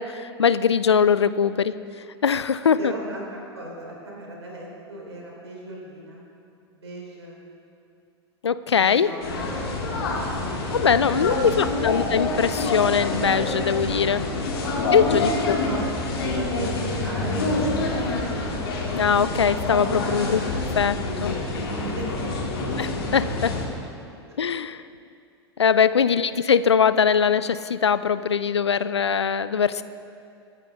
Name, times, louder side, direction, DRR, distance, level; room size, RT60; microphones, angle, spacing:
voice 1, 0.0-1.7 2.2-2.9 8.4-9.1 10.7-14.2 14.9-15.6 19.0-20.4 20.8-21.4 22.8-23.6 24.4-24.8 25.6-29.8, left 7 dB, 80° left, 15 dB, 0.5 m, -21 dB
voice 2, 2.8-6.2 6.7-7.4 8.7-9.2 10.0-12.1 14.6-14.8 15.4-15.9 16.2-18.6 19.9-20.5 21.0-22.1 24.3-24.4 26.1-26.3, right 1 dB, 75° right, -2 dB, 3.9 m, -38 dB
sound 1, 9.2-23.6, left 2 dB, 65° left, 2.9 m, -27 dB
25.0 x 9.1 x 3.7 m, 2.5 s
figure-of-eight pair, 90°, 14 cm